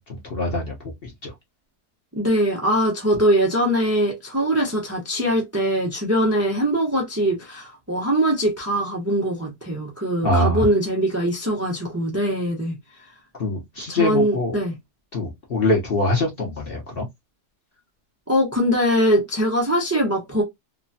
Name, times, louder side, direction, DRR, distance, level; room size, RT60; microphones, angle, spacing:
voice 1, 0.1-0.7 1.0-1.3 10.2-10.6 13.4-14.5 15.1-17.1, left 1 dB, 45° left, 0.8 m, -23 dB
voice 2, 2.2-12.8 13.9-14.7 18.3-20.4, equal, 25° right, 0.3 m, -22 dB
3.0 x 2.2 x 2.6 m
omnidirectional pair, 1.8 m